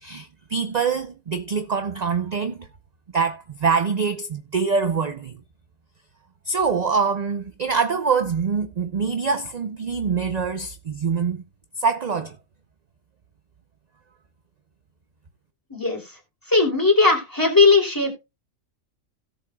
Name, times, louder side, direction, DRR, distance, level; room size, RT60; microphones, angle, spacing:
voice 1, 0.0-2.7 3.1-5.4 6.5-11.4 11.8-12.4, right 5 dB, 40° right, 0.6 m, -24 dB
voice 2, 15.7-16.2 16.5-18.1, left 3 dB, 15° left, 3.0 m, -18 dB
17.0 x 7.2 x 2.3 m
omnidirectional pair, 1.4 m